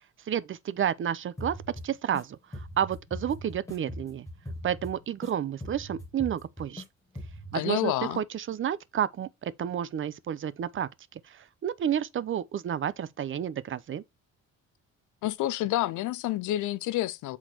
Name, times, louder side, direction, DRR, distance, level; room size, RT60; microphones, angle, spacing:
voice 1, 0.3-1.6 1.8-2.4 2.8-4.3 4.6-6.8 7.5-10.9 11.6-14.0, right 9 dB, 45° right, 0.5 m, -30 dB
sound 1, 1.4-2.2 2.5-5.3 5.6-6.8 7.2-7.5, equal, 10° left, 2.0 m, -40 dB
voice 2, 7.5-8.2 15.2-17.4, left 15 dB, 80° left, 0.5 m, -29 dB
6.1 x 3.9 x 4.4 m
cardioid pair, 90°, 30 cm